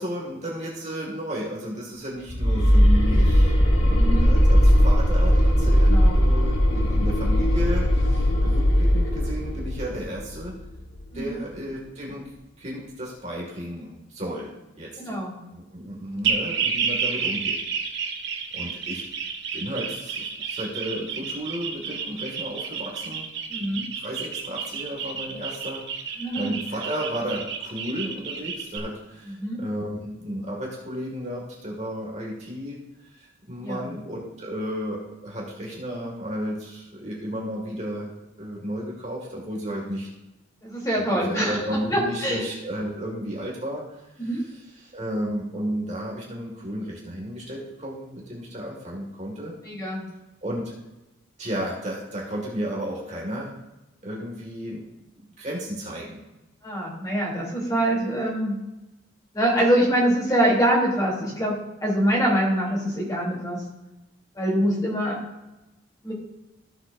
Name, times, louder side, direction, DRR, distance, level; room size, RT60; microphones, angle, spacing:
voice 1, 0.0-10.6 11.1-12.2 12.6-14.5 14.8-15.2 15.5-17.6 18.5-19.1 19.5-23.3 23.6-38.1 38.4-40.1 40.9-43.8 44.2-49.6 50.4-50.7 51.4-53.5 54.0-54.8 55.4-56.2, equal, 35° right, -3 dB, 2.0 m, -33 dB
sound 1, 2.3-11.2, equal, 65° left, 2.2 m, -19 dB
voice 2, 4.0-4.3 5.9-6.2 11.1-11.3 15.0-15.4 23.5-23.8 26.2-26.5 29.2-29.6 33.6-33.8 40.6-41.6 41.9-42.4 44.2-44.4 49.6-50.0 56.6-58.5 59.3-63.6 64.3-65.2 66.0-66.1, right 1 dB, 15° left, -4 dB, 3.0 m, -24 dB
sound 2, 16.2-28.8, right 6 dB, 60° right, 1.3 m, -30 dB
15.0 x 7.5 x 2.6 m, 0.99 s
head